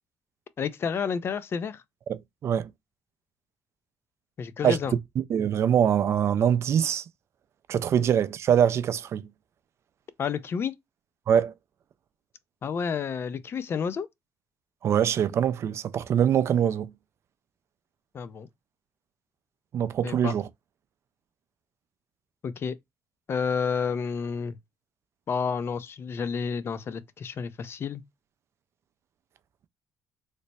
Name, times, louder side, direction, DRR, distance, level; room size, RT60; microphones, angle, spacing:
voice 1, 0.6-1.8 4.4-4.9 10.2-10.7 12.6-14.1 18.1-18.5 20.0-20.3 22.4-22.8 23.3-24.6 25.3-28.0, left 6 dB, 45° left, 0.4 m, -30 dB
voice 2, 2.1-2.7 4.6-4.8 5.3-7.0 7.7-9.2 11.3-11.5 14.8-16.9 19.7-20.5, right 9 dB, 55° right, 0.4 m, -23 dB
3.3 x 2.1 x 4.0 m
cardioid pair, 90°, 6 cm